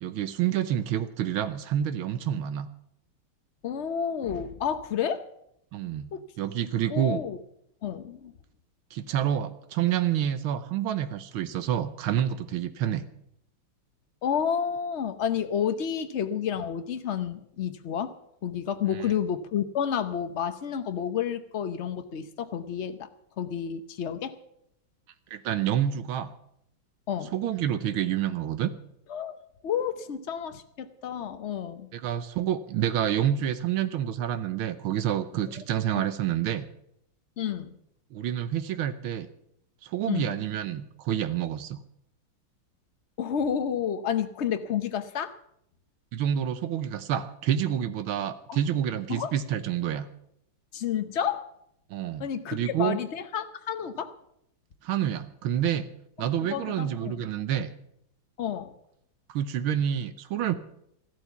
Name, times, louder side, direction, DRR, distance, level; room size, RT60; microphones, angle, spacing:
voice 1, 0.0-2.7 5.7-7.2 8.9-13.0 25.3-26.3 27.3-28.7 31.9-36.7 38.1-39.3 39.8-41.8 46.1-50.1 51.9-53.0 54.8-55.9 56.2-57.7 59.3-60.5, right 10 dB, 80° right, 12 dB, 1.6 m, -28 dB
voice 2, 3.6-5.3 6.1-6.2 6.9-7.4 7.8-8.3 14.2-18.1 18.4-23.1 23.4-24.3 27.1-27.3 29.1-29.3 29.6-31.9 37.4-37.7 40.1-40.4 43.2-45.4 48.5-48.6 49.1-49.3 50.7-51.5 52.2-54.1 56.2-57.2 58.4-58.7, left 8 dB, 90° left, 10 dB, 0.6 m, -30 dB
14.0 x 12.0 x 7.0 m, 0.75 s
omnidirectional pair, 2.3 m